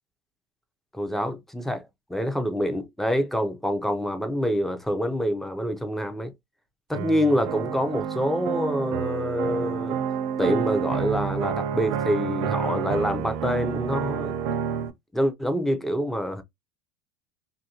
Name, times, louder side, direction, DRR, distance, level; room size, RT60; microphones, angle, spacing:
voice 1, 0.9-1.8 2.1-6.3 6.9-10.0 10.4-14.4 15.1-16.4, equal, ahead, 0.5 m, -26 dB
sound 1, 6.9-14.9, right 7 dB, 60° right, 0.5 m, -29 dB
2.7 x 2.5 x 2.8 m
supercardioid pair, 120°, 14 cm